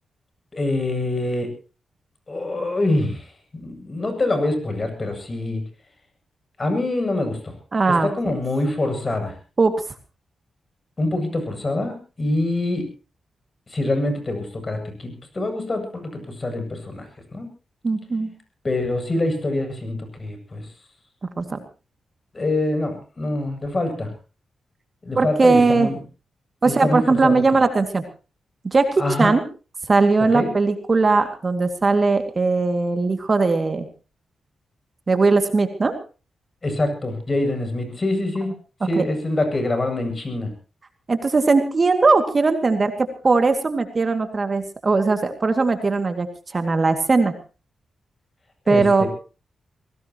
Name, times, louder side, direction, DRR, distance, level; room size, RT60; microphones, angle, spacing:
voice 1, 0.5-1.5 2.3-5.6 6.6-7.5 7.9-9.4 11.0-12.8 13.7-17.5 18.6-20.7 22.3-24.1 25.0-26.0 26.6-27.6 29.0-29.3 30.3-30.5 36.6-38.5 38.8-40.5 48.7-49.1, left 2 dB, 35° left, 6 dB, 8.0 m, -25 dB
voice 2, 7.7-8.1 9.6-9.7 17.8-18.3 21.2-21.6 25.2-25.9 26.6-28.0 28.6-29.4 29.9-33.9 35.1-35.9 39.0-39.1 41.1-46.3 46.5-47.3 48.7-49.0, right 3 dB, 40° right, 7 dB, 2.3 m, -19 dB
23.5 x 18.0 x 3.0 m, 0.34 s
cardioid pair, 60°, 0 cm